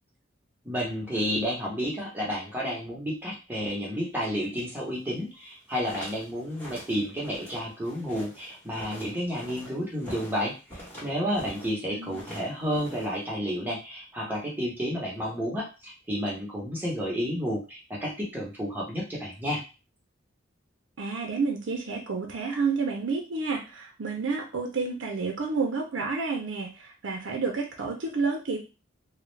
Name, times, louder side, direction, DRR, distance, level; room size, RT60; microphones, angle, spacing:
voice 1, 0.6-19.6, equal, 10° right, -4 dB, 0.8 m, -31 dB
sound 1, 5.5-11.8 12.1-13.3, equal, 10° left, 1.0 m, -45 dB
voice 2, 21.0-28.6, right 4 dB, 70° right, 1 dB, 0.5 m, -30 dB
2.4 x 2.1 x 3.1 m, 0.31 s
head